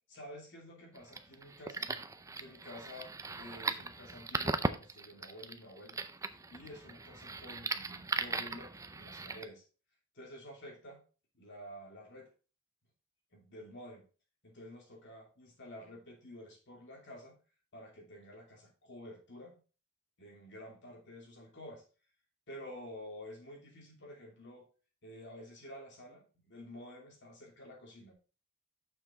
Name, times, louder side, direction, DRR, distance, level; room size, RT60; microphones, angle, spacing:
voice 1, 0.1-1.9 2.4-6.0 6.5-9.6 10.1-11.0 11.3-12.3 13.3-14.0 14.4-17.3 17.7-19.6 20.2-21.8 22.5-24.7 25.0-28.2, left 1 dB, 60° left, 1 dB, 2.7 m, -50 dB
sound 1, 0.9-9.4, right 3 dB, 15° right, 0.5 m, -38 dB
6.8 x 5.9 x 4.0 m, 0.34 s
head